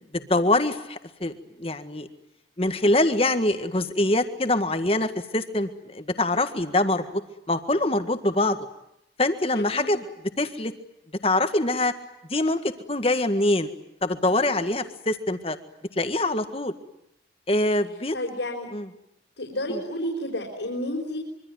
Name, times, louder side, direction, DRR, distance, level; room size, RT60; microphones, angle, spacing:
voice 1, 0.1-2.1 2.6-7.2 7.5-8.6 9.2-10.0 10.4-10.7 11.2-11.9 12.3-13.7 14.0-15.6 15.9-16.7 17.5-18.1 18.7-18.9 19.7-19.8, left 2 dB, 30° left, 9 dB, 1.7 m, -24 dB
voice 2, 9.5-9.9 18.1-18.7 19.4-21.2, left 1 dB, 85° left, -1 dB, 5.1 m, -31 dB
25.5 x 24.0 x 9.5 m, 0.79 s
head